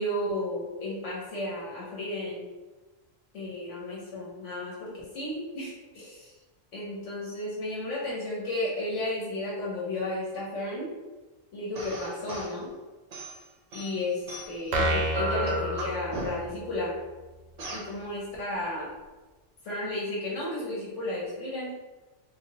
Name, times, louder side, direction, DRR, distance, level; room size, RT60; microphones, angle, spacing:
voice 1, 0.0-2.5 3.3-6.3 6.7-10.9 11.5-12.7 13.7-17.0 17.7-18.9 19.6-21.7, left 1 dB, 70° left, -5 dB, 1.1 m, -33 dB
sound 1, 11.8-12.6 13.1-14.7 15.1-16.6 17.6-17.9, right 1 dB, 50° right, 0.5 m, -37 dB
sound 2, 14.7-16.6, right 1 dB, 80° right, 1.0 m, -28 dB
3.5 x 2.7 x 2.9 m, 1.2 s
omnidirectional pair, 1.3 m